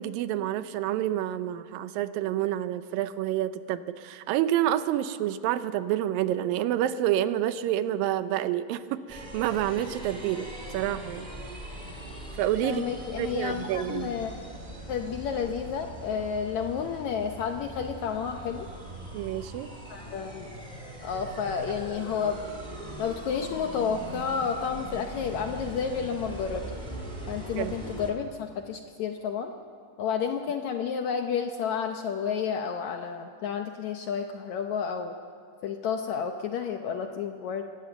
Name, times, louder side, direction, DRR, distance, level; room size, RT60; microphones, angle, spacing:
voice 1, 0.0-11.3 12.3-12.8 13.2-14.1 19.1-19.7 27.6-27.8, right 12 dB, 80° right, 12 dB, 2.4 m, -28 dB
sound 1, 9.1-28.1, right 1 dB, 15° right, 1.8 m, -41 dB
voice 2, 12.6-14.3 14.9-18.7 19.9-20.5 21.0-22.4 23.0-26.7 27.3-29.5 30.0-35.1 35.6-37.6, left 6 dB, 75° left, 5 dB, 1.7 m, -31 dB
23.5 x 17.0 x 7.0 m, 2.3 s
omnidirectional pair, 4.1 m